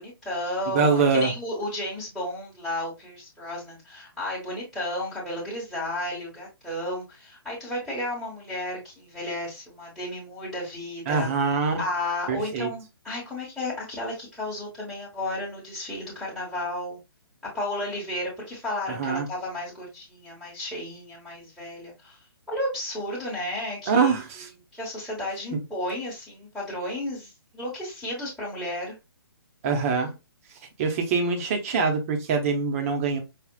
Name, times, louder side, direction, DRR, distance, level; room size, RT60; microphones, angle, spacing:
voice 1, 0.0-11.3 11.8-17.0 17.5-22.2 22.5-24.1 24.7-28.9, left 1 dB, ahead, 1.2 m, -33 dB
voice 2, 0.7-1.3 11.1-11.8 12.3-12.7 18.9-19.3 23.9-24.5 29.6-30.1 30.8-33.2, right 5 dB, 35° right, 0.9 m, -24 dB
5.0 x 2.4 x 2.3 m
figure-of-eight pair, 135°, 13 cm